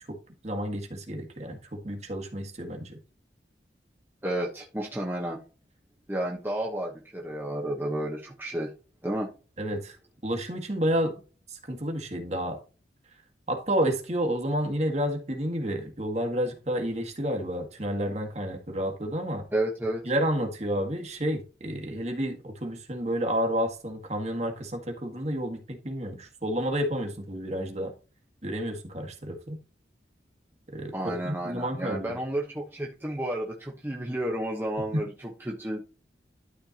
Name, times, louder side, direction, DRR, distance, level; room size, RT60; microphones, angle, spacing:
voice 1, 0.4-3.0 9.6-10.0 10.2-11.1 11.6-12.6 13.5-19.4 20.0-27.9 28.4-29.6 30.7-32.2 34.9-35.0, equal, 40° right, 3 dB, 1.8 m, -30 dB
voice 2, 4.2-5.4 6.1-8.7 9.0-9.3 19.5-20.0 30.9-35.8, right 1 dB, 10° right, -2 dB, 1.1 m, -31 dB
12.0 x 4.5 x 2.9 m, 0.35 s
head